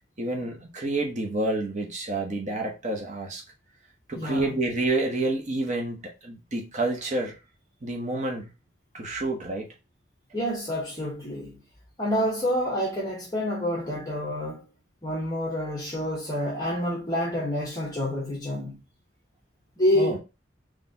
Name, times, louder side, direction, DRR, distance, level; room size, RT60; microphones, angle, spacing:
voice 1, 0.2-3.4 4.1-7.4 7.8-8.5 8.9-9.7 19.9-20.2, right 2 dB, 40° right, 0.9 m, -29 dB
voice 2, 4.1-4.4 10.3-11.6 12.0-14.7 15.0-18.8 19.8-20.2, left 1 dB, 20° left, 0.9 m, -28 dB
4.0 x 3.2 x 2.7 m
head